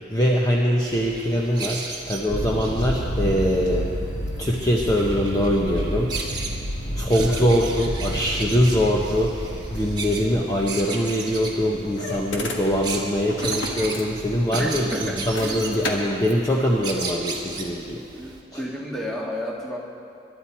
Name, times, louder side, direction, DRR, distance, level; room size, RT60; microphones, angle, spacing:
voice 1, 0.1-3.9 4.4-6.3 7.0-18.0 18.5-18.6, equal, 20° left, -3 dB, 1.0 m, -23 dB
sound 1, 0.9-18.4, right 4 dB, 25° right, 1.5 m, -36 dB
sound 2, 2.3-16.3, left 1 dB, 90° left, 1.6 m, -31 dB
voice 2, 7.1-7.5 14.5-15.7 18.1-19.8, equal, 5° left, -3 dB, 1.8 m, -32 dB
23.5 x 11.5 x 4.5 m, 2.6 s
head